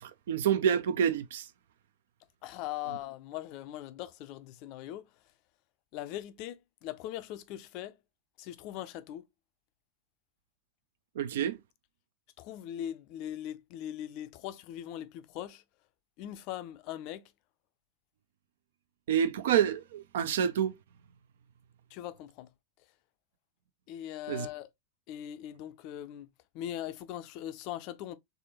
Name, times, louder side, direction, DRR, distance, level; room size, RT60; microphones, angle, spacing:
voice 1, 0.0-1.5 11.2-11.6 19.1-20.7 24.3-24.5, right 9 dB, 60° right, 0.4 m, -28 dB
voice 2, 2.4-5.1 5.9-8.0 8.4-9.2 12.4-15.6 16.2-17.3 21.9-22.5 23.9-24.7 25.1-26.3 26.5-28.2, left 12 dB, 45° left, 0.4 m, -40 dB
3.6 x 3.4 x 2.7 m
figure-of-eight pair, 90°, 0 cm